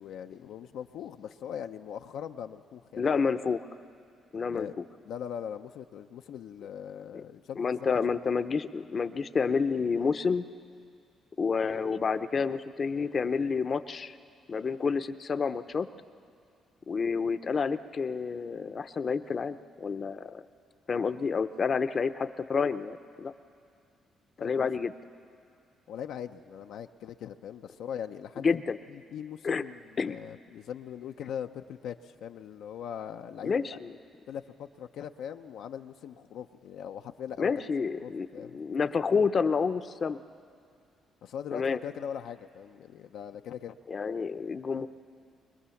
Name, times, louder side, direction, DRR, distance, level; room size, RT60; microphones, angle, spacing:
voice 1, 0.0-3.1 4.5-4.8 5.0-7.9 24.4-24.7 25.9-28.6 28.9-33.7 34.3-37.5 38.0-38.6 41.2-43.8, left 8 dB, 80° left, 6 dB, 0.6 m, -40 dB
voice 2, 3.0-3.6 4.3-4.7 7.1-7.2 7.6-10.4 11.4-14.2 14.5-15.9 16.9-20.4 20.9-23.3 24.4-24.9 28.4-28.8 29.4-29.6 30.0-30.2 33.4-33.9 37.4-38.3 38.5-40.2 41.5-41.8 43.9-44.9, left 5 dB, 45° left, 10 dB, 0.7 m, -29 dB
23.5 x 21.0 x 7.1 m, 2.3 s
cardioid pair, 90°, 0 cm